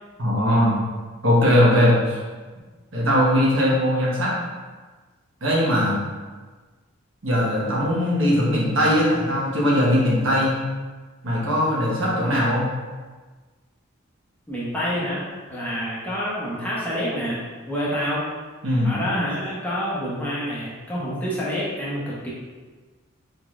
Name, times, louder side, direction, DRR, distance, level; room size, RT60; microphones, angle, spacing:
voice 1, 0.2-0.8 1.2-2.2 2.9-4.3 5.4-6.0 7.2-10.5 11.2-12.7 18.6-19.0, equal, 70° right, -6 dB, 1.2 m, -20 dB
voice 2, 14.5-17.4 17.7-18.2 18.8-22.3, equal, 10° left, -8 dB, 0.9 m, -27 dB
4.5 x 3.8 x 2.4 m, 1.4 s
head